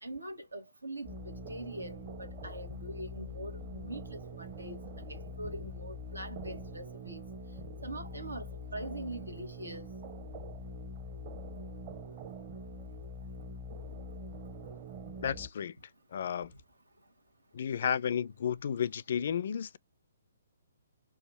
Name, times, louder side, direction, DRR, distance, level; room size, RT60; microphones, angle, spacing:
voice 1, 0.0-7.2 7.8-9.9, right 1 dB, 90° right, 1.3 m, -43 dB
sound 1, 1.0-15.5, left 1 dB, 35° right, 1.0 m, -44 dB
voice 2, 15.2-15.8 16.1-16.5 17.5-19.8, left 8 dB, 55° left, 0.3 m, -32 dB
4.8 x 2.4 x 4.1 m
figure-of-eight pair, 135°, 0 cm